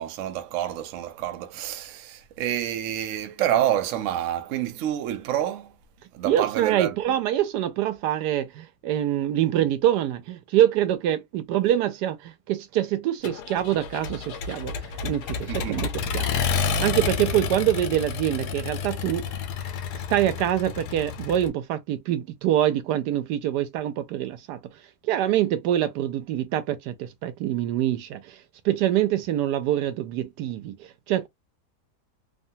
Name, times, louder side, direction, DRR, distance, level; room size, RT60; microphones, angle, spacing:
voice 1, 0.0-5.7 6.1-7.0 15.5-15.8, right 11 dB, 70° right, 0.8 m, -28 dB
voice 2, 6.2-16.4 16.8-19.4 19.9-24.6 25.0-31.3, right 12 dB, 85° right, 1.2 m, -25 dB
Accelerating revving vroom, 13.2-21.5, left 6 dB, 80° left, 1.2 m, -30 dB
3.0 x 2.2 x 2.6 m
omnidirectional pair, 1.7 m